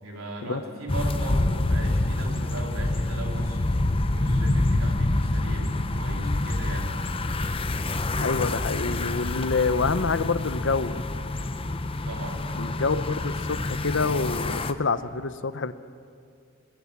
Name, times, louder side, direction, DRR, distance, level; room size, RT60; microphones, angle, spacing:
voice 1, 0.0-3.6 4.1-6.9 12.1-12.7, right 2 dB, 90° right, 1 dB, 3.5 m, -38 dB
sound 1, 0.9-14.7, left 2 dB, 25° left, 0.7 m, -27 dB
voice 2, 8.2-11.0 12.6-15.7, left 4 dB, 60° left, 13 dB, 0.8 m, -27 dB
22.5 x 18.0 x 7.3 m, 2.4 s
head